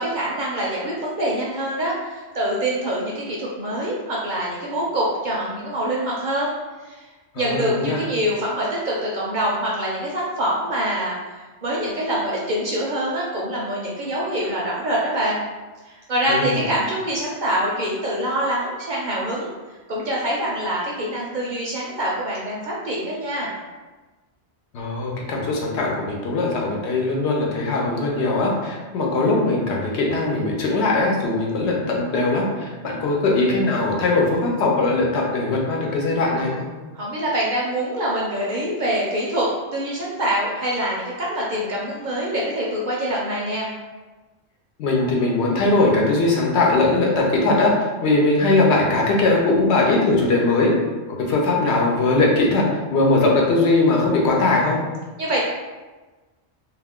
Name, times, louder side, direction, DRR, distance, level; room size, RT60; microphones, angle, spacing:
voice 1, 0.0-6.5 6.8-7.1 7.4-15.4 15.8-19.5 19.9-23.5 36.9-43.7 55.2-55.4, right 1 dB, 55° right, -4 dB, 0.5 m, -25 dB
voice 2, 7.3-8.0 16.3-16.6 24.7-36.7 44.8-47.7 48.0-50.7 51.1-54.8, left 2 dB, 75° left, -2 dB, 0.9 m, -20 dB
2.5 x 2.4 x 3.5 m, 1.2 s
omnidirectional pair, 1.2 m